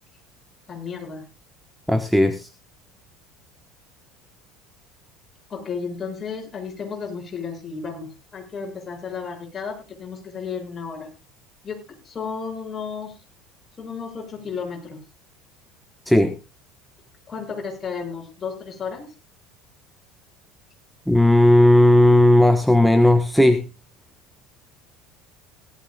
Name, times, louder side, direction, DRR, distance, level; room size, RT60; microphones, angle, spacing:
voice 1, 0.7-1.2 5.5-11.1 11.6-13.2 13.8-15.0 17.3-19.1, left 5 dB, 30° left, 2 dB, 7.1 m, -33 dB
voice 2, 1.9-2.5 16.1-16.4 21.1-23.6, left 1 dB, ahead, 8 dB, 1.2 m, -15 dB
17.5 x 13.5 x 2.3 m, 0.28 s
hypercardioid pair, 70°, 0 cm